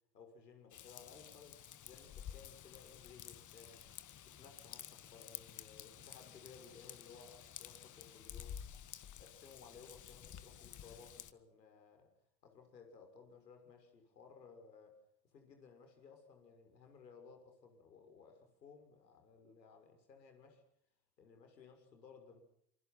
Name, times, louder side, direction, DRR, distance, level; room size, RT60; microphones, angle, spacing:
voice 1, 0.1-3.9 4.3-8.6 9.1-12.1 12.4-20.6 21.2-22.4, left 5 dB, 90° left, 6.6 m, -59 dB
Raindrop / Vehicle horn car horn honking / Trickle dribble, 0.7-11.3, left 9 dB, 35° left, 1.7 m, -52 dB
27.5 x 25.0 x 6.0 m
hypercardioid pair, 75°, 48 cm